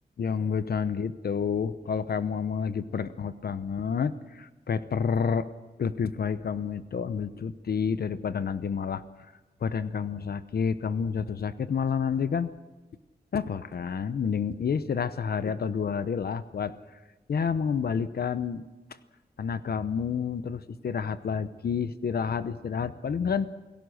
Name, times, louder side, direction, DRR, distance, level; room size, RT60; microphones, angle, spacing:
voice 1, 0.2-5.5 5.8-9.0 9.6-12.5 13.3-16.8 17.3-18.7 19.4-23.5, left 6 dB, 65° left, 13 dB, 0.8 m, -29 dB
28.5 x 17.5 x 6.4 m, 1.2 s
wide cardioid pair, 145°, 17 cm